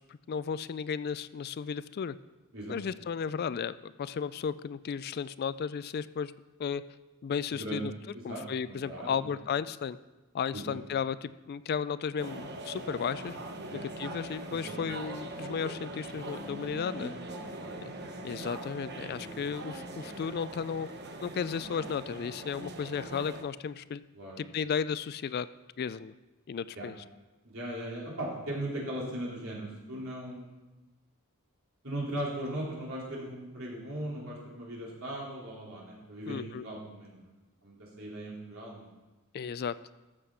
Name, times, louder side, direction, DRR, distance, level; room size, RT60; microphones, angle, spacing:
voice 1, 0.3-2.2 2.7-6.3 6.6-6.8 7.2-7.9 8.2-10.0 10.3-13.4 13.7-17.1 17.8-17.9 18.2-20.9 21.2-24.0 24.4-25.5 25.8-26.1 26.5-27.0 36.3-36.6 39.3-39.7, left 6 dB, 45° left, 16 dB, 0.3 m, -34 dB
voice 2, 7.5-7.8 8.1-9.2 10.5-10.8 13.6-13.8 14.5-14.8 17.0-17.7 18.0-18.3 19.1-19.4 24.1-24.4 26.7-26.9 27.4-30.5 31.8-37.2 37.6-38.9, right 1 dB, 65° right, -5 dB, 3.8 m, -39 dB
sound 1, 12.2-23.4, right 2 dB, 50° right, 1.0 m, -42 dB
13.5 x 6.5 x 5.7 m, 1.1 s
head